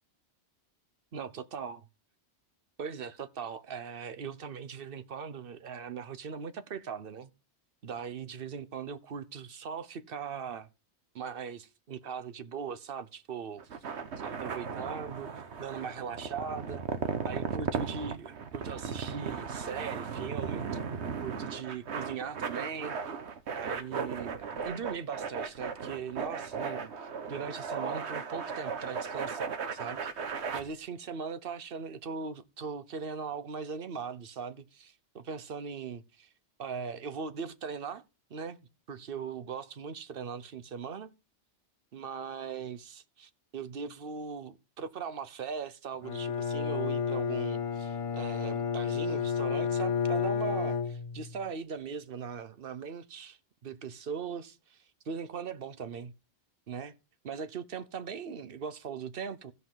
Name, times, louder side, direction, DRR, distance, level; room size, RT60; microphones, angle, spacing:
voice 1, 1.1-1.8 2.8-7.3 7.8-10.7 11.1-13.6 14.2-15.3 15.6-16.8 17.2-20.8 21.2-23.0 23.5-30.2 30.5-36.3 36.6-38.0 38.3-38.6 38.9-41.1 41.9-56.1 56.7-56.9 57.2-59.5, right 6 dB, 55° right, 1.0 m, -39 dB
sound 1, 13.6-30.6, right 6 dB, 75° right, 1.3 m, -36 dB
Bowed string instrument, 46.0-51.5, left 6 dB, 40° left, 0.5 m, -31 dB
16.0 x 5.5 x 3.8 m
omnidirectional pair, 1.2 m